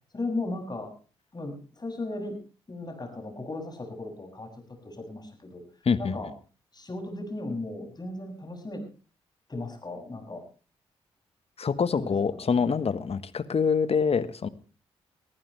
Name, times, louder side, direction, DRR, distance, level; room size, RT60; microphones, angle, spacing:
voice 1, 0.1-0.9 1.3-2.4 2.7-4.5 4.8-5.6 6.0-6.3 6.7-8.8 9.5-10.4 12.0-12.7, left 2 dB, 30° left, 4 dB, 7.3 m, -36 dB
voice 2, 11.6-14.5, left 6 dB, 45° left, 13 dB, 1.4 m, -25 dB
22.5 x 14.5 x 3.4 m, 0.36 s
hypercardioid pair, 40°, 14 cm